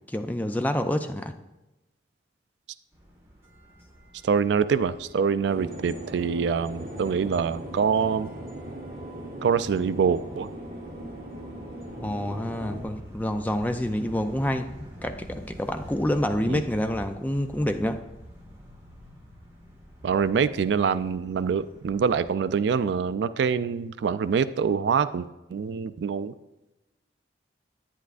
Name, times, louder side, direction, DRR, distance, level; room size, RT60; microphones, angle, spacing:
voice 1, 0.1-1.3 11.9-18.0, left 1 dB, 10° left, 7 dB, 0.3 m, -28 dB
sound 1, 2.9-22.3, equal, 15° right, 1.6 m, -47 dB
voice 2, 4.2-8.3 9.4-10.5 16.5-16.6 20.0-26.3, right 6 dB, 80° right, 14 dB, 0.3 m, -25 dB
sound 2, 5.4-12.8, right 1 dB, 50° right, 1.6 m, -39 dB
10.0 x 9.3 x 2.5 m, 0.99 s
head